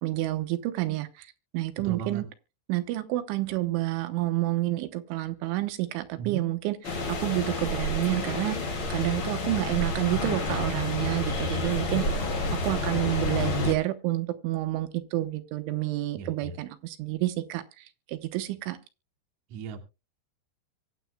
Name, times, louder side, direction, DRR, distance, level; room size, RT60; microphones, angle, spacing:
voice 1, 0.0-2.3 2.7-6.8 7.1-8.6 8.9-12.2 12.5-18.8, right 16 dB, 80° right, 9 dB, 3.3 m, -29 dB
voice 2, 1.8-2.2 6.2-6.4 16.1-16.5 19.5-19.8, right 7 dB, 55° right, 3 dB, 2.3 m, -36 dB
sound 1, 6.8-13.7, left 2 dB, 40° left, 2.2 m, -29 dB
24.0 x 8.2 x 2.2 m, 0.28 s
omnidirectional pair, 5.5 m